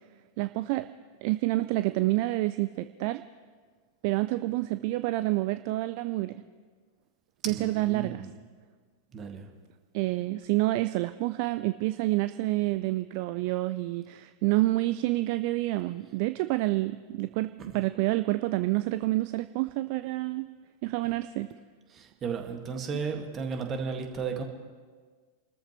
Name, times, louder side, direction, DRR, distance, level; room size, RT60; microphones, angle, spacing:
voice 1, 0.4-0.9 1.2-3.2 4.0-6.4 7.5-8.3 9.9-20.5 20.8-21.5, right 18 dB, 45° right, 12 dB, 0.4 m, -28 dB
voice 2, 7.4-8.3 9.1-9.5 17.6-17.9 21.9-24.4, right 5 dB, 25° right, 4 dB, 1.9 m, -34 dB
29.0 x 13.5 x 3.2 m, 1.5 s
figure-of-eight pair, 90°, 0 cm